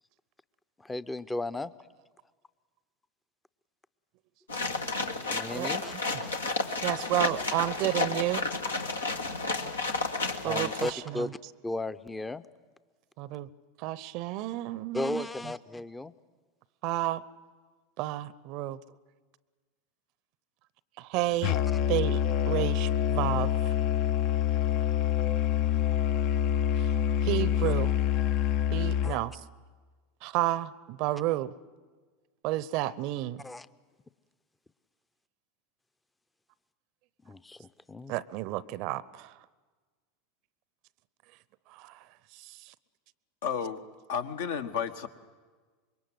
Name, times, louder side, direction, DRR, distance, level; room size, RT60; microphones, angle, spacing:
voice 1, 0.8-1.7 5.3-5.9 10.4-11.4 11.6-12.4 14.9-16.1 27.6-27.7 29.0-29.2 33.4-33.7 37.3-37.6 37.9-38.1, left 2 dB, 10° left, 15 dB, 0.7 m, -35 dB
sound 1, 4.5-10.9, left 3 dB, 85° left, 1.5 m, -31 dB
voice 2, 6.8-8.5 10.4-11.3 13.2-13.5 13.8-15.3 16.8-17.2 18.0-18.8 21.0-21.5 21.9-23.5 27.2-27.9 28.7-29.3 30.2-31.5 32.4-33.4 38.1-39.3 41.8-41.9, right 15 dB, 50° right, 20 dB, 0.7 m, -31 dB
Musical instrument, 21.4-29.2, left 10 dB, 50° left, 0.7 m, -26 dB
voice 3, 43.4-43.8 44.1-45.1, left 7 dB, 65° left, 7 dB, 1.3 m, -32 dB
25.5 x 22.5 x 8.0 m, 1.4 s
figure-of-eight pair, 85°, 0 cm